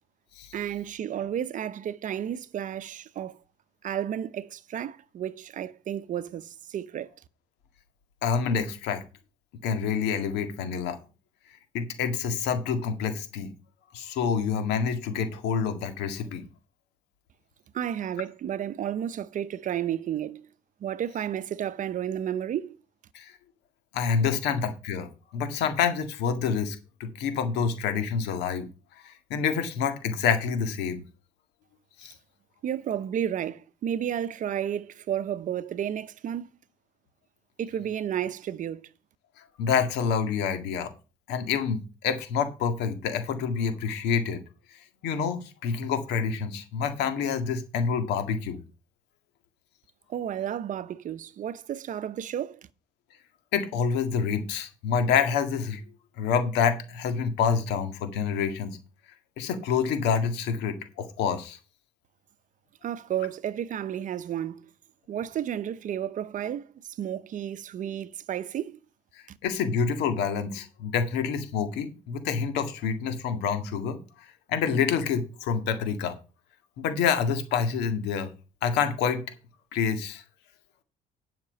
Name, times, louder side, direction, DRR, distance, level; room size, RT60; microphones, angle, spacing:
voice 1, 0.5-3.4 3.8-7.1 17.7-20.5 20.8-22.8 32.6-36.5 37.6-38.9 50.1-52.7 62.8-64.7 65.1-68.8 69.3-69.4, right 10 dB, 50° right, 0.7 m, -32 dB
voice 2, 8.2-9.0 9.6-11.0 11.7-13.5 13.9-16.4 23.1-23.3 23.9-28.7 29.0-31.0 32.0-32.1 39.6-40.9 41.3-44.4 44.7-48.6 53.5-55.8 56.2-58.8 59.4-61.6 69.4-74.0 74.5-76.2 76.8-78.3 78.6-79.2 79.7-80.2, left 6 dB, 90° left, 1.8 m, -27 dB
10.5 x 5.9 x 5.3 m
cardioid pair, 110°, 17 cm